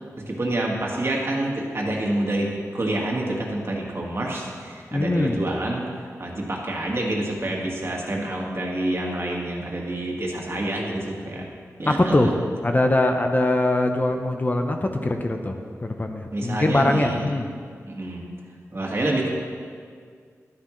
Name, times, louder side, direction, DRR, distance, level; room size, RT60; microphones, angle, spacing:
voice 1, 0.2-5.9 6.2-11.4 11.8-12.3 16.3-17.2 17.8-18.2 18.7-19.3, right 1 dB, 45° right, -1 dB, 1.8 m, -27 dB
voice 2, 4.9-5.4 11.9-12.3 12.6-17.5, left 1 dB, 30° left, 4 dB, 0.7 m, -22 dB
11.5 x 9.5 x 3.2 m, 2.1 s
wide cardioid pair, 65°, 6 cm